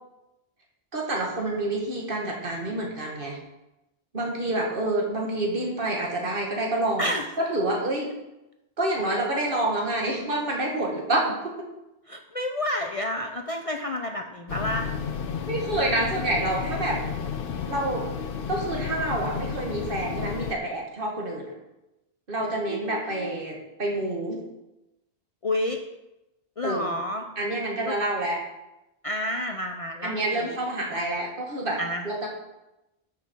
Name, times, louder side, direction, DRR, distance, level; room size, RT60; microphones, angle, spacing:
voice 1, 0.9-3.4 4.1-7.1 7.4-8.1 8.8-11.5 15.5-17.0 17.6-18.0 18.5-21.5 22.3-24.4 26.6-26.9 27.4-28.4 30.0-31.8 32.0-32.3, right 1 dB, 55° right, -1 dB, 2.2 m, -28 dB
voice 2, 12.1-14.9 22.7-23.3 25.4-25.8 26.6-27.3 27.8-28.0 29.0-30.6 31.8-32.1, left 1 dB, 35° left, 3 dB, 0.7 m, -30 dB
sound 1, 14.5-20.6, left 7 dB, 60° left, 0.9 m, -32 dB
12.5 x 6.2 x 4.7 m, 0.94 s
omnidirectional pair, 1.1 m